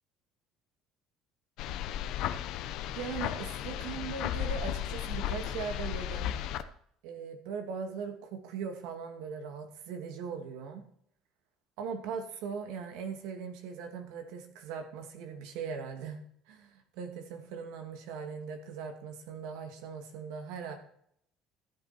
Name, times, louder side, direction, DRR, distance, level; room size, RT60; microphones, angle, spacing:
sound 1, 1.6-6.6, left 11 dB, 70° left, 0.9 m, -35 dB
voice 1, 2.9-6.3 7.0-10.8 11.8-20.8, right 6 dB, 85° right, 5 dB, 2.3 m, -40 dB
14.0 x 8.0 x 4.4 m, 0.66 s
cardioid pair, 120°, 0 cm